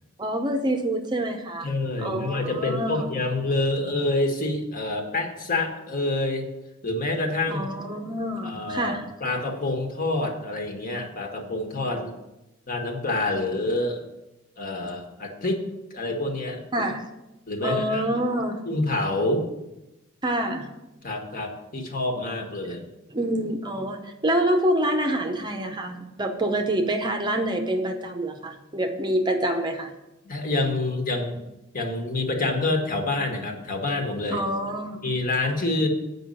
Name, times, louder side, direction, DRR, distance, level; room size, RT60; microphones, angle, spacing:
voice 1, 0.2-1.7 2.0-3.1 7.5-9.0 16.7-17.1 17.6-18.6 20.2-20.7 23.1-29.9 34.3-35.0, right 1 dB, 20° right, 5 dB, 0.7 m, -26 dB
voice 2, 1.6-6.4 6.8-7.7 8.4-12.1 12.7-14.1 14.6-15.6 15.9-16.6 17.5-18.0 18.6-19.5 21.0-22.8 30.2-31.5 31.7-34.4 35.0-35.9, left 2 dB, 40° left, 2 dB, 1.5 m, -27 dB
8.5 x 5.4 x 7.7 m, 0.96 s
head